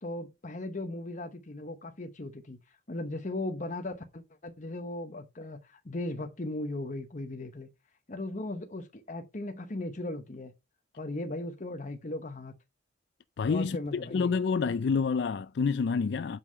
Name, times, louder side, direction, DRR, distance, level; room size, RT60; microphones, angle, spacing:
voice 1, 0.0-7.7 8.1-10.5 10.9-12.5 13.5-14.3, left 2 dB, 40° left, 0.9 m, -37 dB
voice 2, 13.4-13.8 14.1-16.4, left 5 dB, 60° left, 0.4 m, -28 dB
7.9 x 5.6 x 5.4 m
head